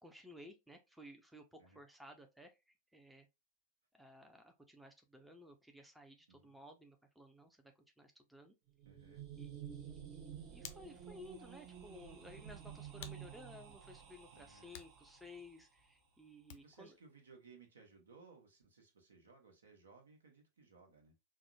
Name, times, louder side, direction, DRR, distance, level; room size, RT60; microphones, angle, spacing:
voice 1, 0.0-3.3 3.9-8.5 9.3-17.0, left 1 dB, 5° right, 0.5 m, -57 dB
sound 1, 8.7-15.7, right 9 dB, 40° right, 0.8 m, -51 dB
voice 2, 8.8-9.3 14.3-14.7 16.5-21.1, right 4 dB, 70° right, 0.9 m, -62 dB
Hands, 10.0-16.9, left 9 dB, 50° left, 0.5 m, -59 dB
4.7 x 2.1 x 2.3 m
figure-of-eight pair, 90°, 0 cm